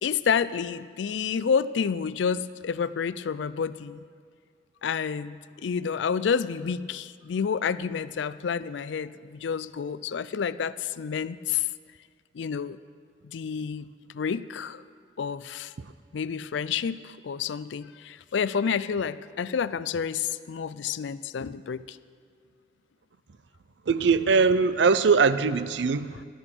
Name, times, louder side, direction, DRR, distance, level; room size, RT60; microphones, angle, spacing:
voice 1, 0.0-4.0 4.8-5.4 5.6-11.7 12.3-12.8 13.2-13.9 14.1-14.8 15.2-15.7 16.1-22.0, left 6 dB, 75° left, 0.4 m, -29 dB
voice 2, 23.9-26.2, right 5 dB, 70° right, 0.5 m, -22 dB
12.5 x 12.0 x 6.1 m
head